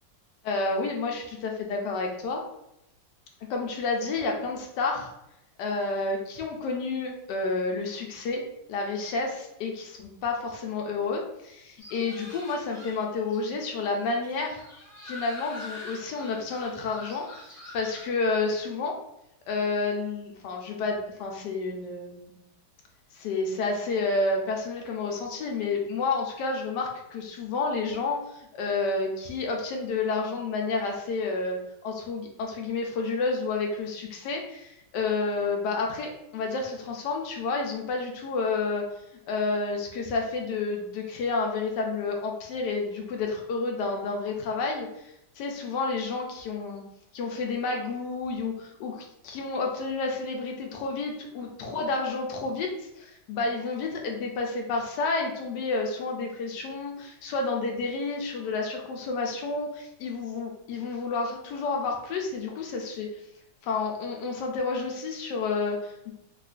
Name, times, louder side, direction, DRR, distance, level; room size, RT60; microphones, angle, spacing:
voice 1, 0.4-2.4 3.5-5.1 5.6-8.4 8.7-14.6 15.0-17.3 17.7-19.0 19.5-22.3 23.1-38.9 39.3-45.1 45.4-46.8 47.1-52.7 53.0-63.1 63.6-66.1, left 3 dB, 75° left, 1 dB, 1.1 m, -30 dB
sound 1, 11.8-18.1, left 2 dB, 25° left, 0.3 m, -45 dB
3.6 x 2.4 x 2.4 m, 0.82 s
omnidirectional pair, 2.1 m